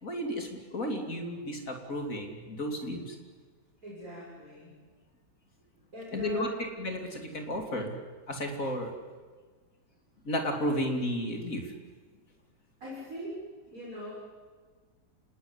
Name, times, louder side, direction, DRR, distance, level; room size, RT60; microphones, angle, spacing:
voice 1, 0.0-3.2 6.1-8.0 8.3-8.9 10.3-11.7, equal, 45° left, 3 dB, 3.5 m, -33 dB
voice 2, 3.8-4.8 5.9-6.7 12.8-13.4 13.7-14.1, equal, 50° right, -7 dB, 6.8 m, -41 dB
27.5 x 19.5 x 9.9 m, 1.5 s
omnidirectional pair, 1.9 m